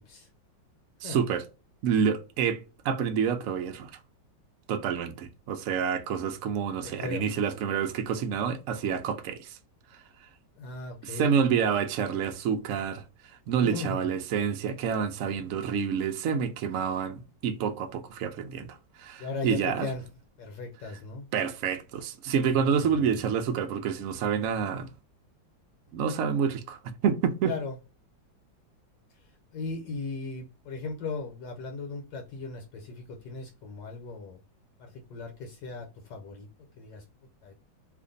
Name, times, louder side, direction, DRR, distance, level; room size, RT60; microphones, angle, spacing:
voice 1, 1.0-1.5 1.8-3.9 4.7-9.6 11.0-13.0 13.5-19.9 21.3-24.9 25.9-27.5, right 7 dB, 85° right, 0.7 m, -28 dB
voice 2, 6.8-7.3 10.6-11.4 13.6-14.1 19.2-20.1 20.4-21.3 22.9-23.2 27.4-27.8 29.5-34.4 34.8-36.5 36.8-37.0 37.4-37.5, left 3 dB, 70° left, 1.3 m, -37 dB
2.9 x 2.5 x 3.7 m
omnidirectional pair, 2.1 m